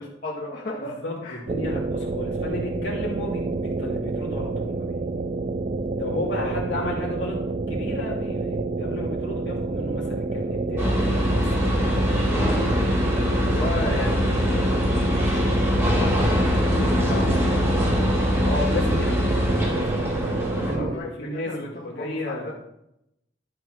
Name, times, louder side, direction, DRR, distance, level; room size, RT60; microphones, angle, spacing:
voice 1, 0.0-1.4 6.4-6.6 13.2-14.7 15.0-18.0 20.5-22.5, left 1 dB, 50° left, -6 dB, 1.6 m, -35 dB
voice 2, 1.0-5.1 5.9-12.0 18.4-22.5, left 1 dB, 75° left, -3 dB, 3.0 m, -33 dB
sound 1, 1.5-21.0, right 3 dB, 40° right, 0.4 m, -28 dB
sound 2, 10.8-20.8, left 1 dB, 15° right, 2.6 m, -23 dB
12.5 x 4.6 x 6.1 m, 0.84 s
head